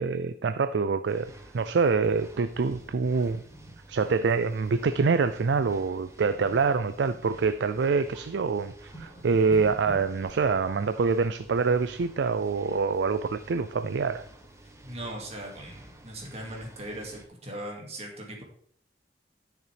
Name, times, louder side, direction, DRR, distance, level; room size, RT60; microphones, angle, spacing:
voice 1, 0.0-3.4 3.9-14.2, right 4 dB, 80° right, 11 dB, 0.4 m, -26 dB
sound 1, 1.1-17.3, right 1 dB, 15° right, 1.0 m, -51 dB
sound 2, 2.0-4.4 4.6-4.9 5.4-5.7 6.0-7.9 8.4-8.5 8.7-10.6 12.4-13.0 13.4-14.8 15.3-15.4 15.6-15.7 16.2-16.3, right 1 dB, 40° left, 3.1 m, -49 dB
voice 2, 14.8-18.4, right 1 dB, 40° right, -1 dB, 2.1 m, -39 dB
11.0 x 6.6 x 3.4 m, 0.62 s
head